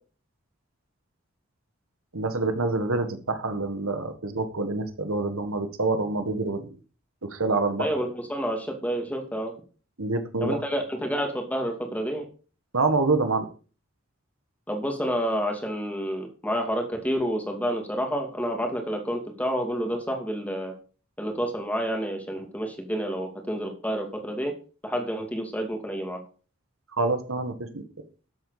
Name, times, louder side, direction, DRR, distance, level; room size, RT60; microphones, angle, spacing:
voice 1, 2.1-6.7 7.2-7.9 10.0-10.6 12.7-13.5 27.0-28.0, right 3 dB, 80° right, 8 dB, 1.7 m, -26 dB
voice 2, 7.8-9.5 10.4-12.3 14.7-20.7 21.2-24.5 24.8-26.2, equal, 5° left, 3 dB, 2.5 m, -29 dB
13.0 x 7.9 x 5.0 m, 0.38 s
head